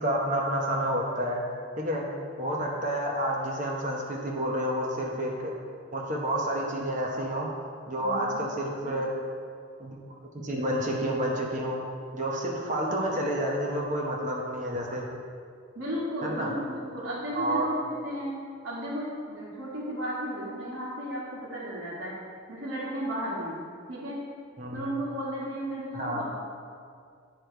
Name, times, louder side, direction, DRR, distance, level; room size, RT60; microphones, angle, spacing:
voice 1, 0.0-1.4 1.8-2.0 2.4-5.5 5.9-7.5 7.9-9.1 9.8-10.0 10.3-11.8 12.1-15.0 16.2-16.5 17.3-17.7 24.6-24.8 25.9-26.2, right 1 dB, 35° right, -2 dB, 0.9 m, -29 dB
voice 2, 8.0-8.4 8.8-8.9 15.7-18.3 18.6-22.1 22.5-23.6 23.9-24.2 24.7-26.2, equal, 75° right, -10 dB, 1.6 m, -34 dB
9.8 x 3.4 x 4.5 m, 2.2 s
head